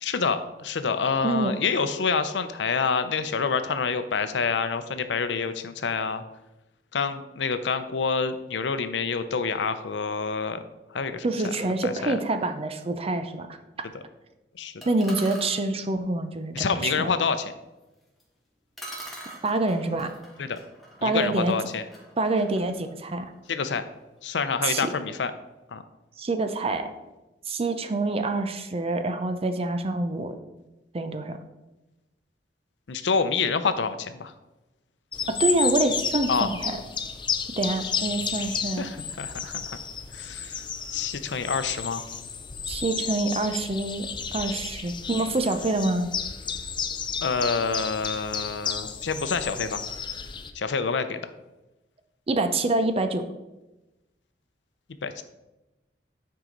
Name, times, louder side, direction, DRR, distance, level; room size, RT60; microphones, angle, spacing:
voice 1, 0.0-6.2 6.9-10.6 10.9-11.2 11.8-12.1 14.5-14.7 16.5-17.5 20.4-20.6 21.0-21.8 23.5-23.9 24.2-25.3 25.7-25.8 32.9-34.3 36.3-36.5 38.8-39.8 40.1-42.0 47.2-49.8 50.5-51.2 55.0-55.2, left 5 dB, 85° left, 10 dB, 0.6 m, -27 dB
voice 2, 11.2-13.6 14.9-17.1 19.4-20.1 21.0-21.5 22.2-23.3 24.6-24.9 26.2-26.9 27.5-30.4 30.9-31.4 35.3-36.8 37.6-38.9 42.7-46.1 52.3-53.3, right 2 dB, 35° right, 8 dB, 0.6 m, -26 dB
sound 1, 14.8-15.6 18.2-18.3 18.8-23.6, right 1 dB, ahead, 1.6 m, -44 dB
sound 2, 35.1-50.5, left 6 dB, 25° left, 0.5 m, -32 dB
9.1 x 4.8 x 3.9 m, 1.0 s
head